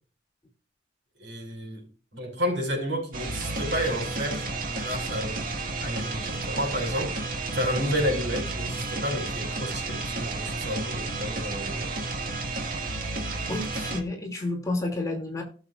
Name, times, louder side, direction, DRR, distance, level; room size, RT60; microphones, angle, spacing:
voice 1, 1.2-1.8 2.1-4.5 4.7-5.5 5.8-11.9, equal, 80° right, 5.5 m, -31 dB
sound 1, 3.1-14.0, right 2 dB, 50° right, 1.8 m, -32 dB
voice 2, 13.5-15.4, left 2 dB, 20° left, 2.7 m, -30 dB
17.5 x 7.2 x 2.5 m
head